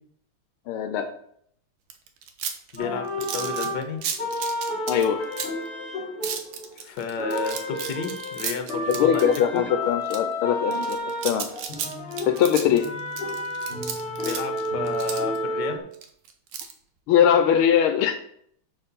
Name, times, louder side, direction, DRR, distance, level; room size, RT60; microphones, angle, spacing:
voice 1, 0.7-1.1 4.9-5.3 8.9-11.0 11.2-11.5 12.3-13.0 17.1-18.2, left 9 dB, 80° left, 8 dB, 1.5 m, -21 dB
sound 1, 1.9-5.7 6.2-9.6 10.1-10.2 10.7-15.4 15.9-16.7, right 7 dB, 75° right, 1.7 m, -33 dB
voice 2, 2.7-3.1 3.3-4.0 6.8-9.2 9.5-9.6 14.2-15.8, left 5 dB, 60° left, 6 dB, 1.5 m, -31 dB
sound 2, 2.8-6.9 7.2-15.8, left 1 dB, 30° left, 1.3 m, -31 dB
7.2 x 4.4 x 5.3 m, 0.66 s
omnidirectional pair, 2.3 m